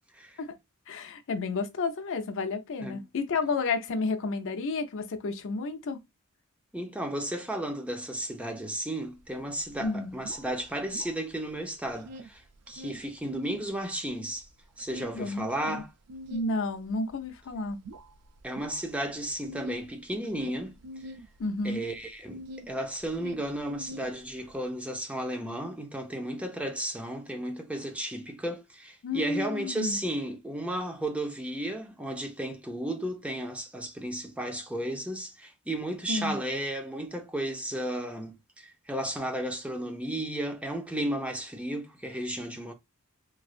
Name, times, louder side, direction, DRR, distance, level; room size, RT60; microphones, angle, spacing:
voice 1, 0.9-6.0 9.8-10.2 15.1-15.8 16.3-17.8 21.4-21.9 29.0-30.0 36.1-36.4, left 3 dB, 60° left, 0.5 m, -31 dB
voice 2, 6.7-12.4 12.7-14.5 14.8-15.9 18.4-20.8 21.6-42.7, right 1 dB, 5° right, 0.5 m, -34 dB
sound 1, 9.2-9.3 9.5-11.5 11.8-13.7 14.1-22.7 23.0-24.5, equal, 85° right, 0.4 m, -45 dB
3.2 x 2.5 x 2.4 m
head